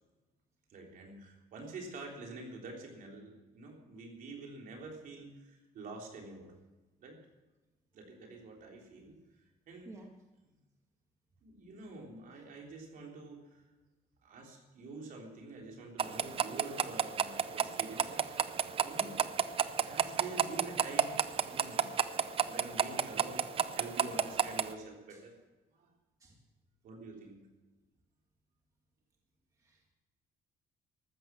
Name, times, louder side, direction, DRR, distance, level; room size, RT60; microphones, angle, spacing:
voice 1, 0.7-6.5 7.0-7.2 7.9-9.2 9.7-10.0 11.4-13.6 14.2-18.4 18.7-19.3 19.8-21.9 22.4-23.4 23.7-25.3 25.7-25.9 26.8-27.4, right 3 dB, 60° right, 0 dB, 3.6 m, -47 dB
voice 2, 9.9-10.1 25.1-25.2 26.2-26.3 29.6-29.9, right 2 dB, 20° right, 0 dB, 1.7 m, -52 dB
sound 1, 16.0-24.7, right 8 dB, 35° right, 0.6 m, -32 dB
14.5 x 12.5 x 6.0 m, 1.1 s
cardioid pair, 165°, 16 cm